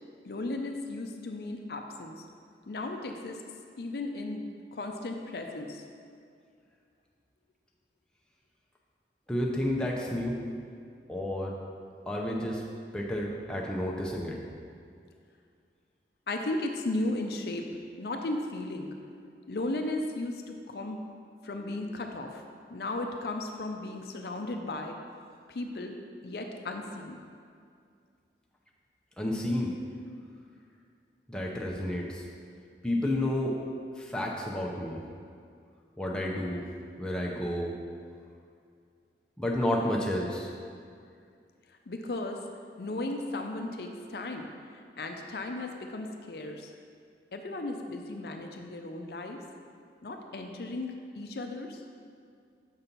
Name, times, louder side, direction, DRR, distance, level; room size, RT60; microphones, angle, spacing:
voice 1, 0.2-2.2 2.7-3.4 3.8-5.9 16.3-19.0 19.5-21.1 21.4-22.4 22.7-25.0 25.5-27.2 41.9-42.4 42.8-46.7 47.3-49.4 50.0-51.8, left 2 dB, 60° left, 4 dB, 0.5 m, -35 dB
voice 2, 9.3-10.4 11.1-11.5 12.1-12.6 12.9-14.3 29.2-29.8 31.3-32.2 32.8-33.6 34.0-35.0 36.0-36.7 37.0-37.7 39.4-40.5, left 1 dB, 5° left, -3 dB, 0.6 m, -30 dB
7.0 x 4.2 x 5.3 m, 2.3 s
head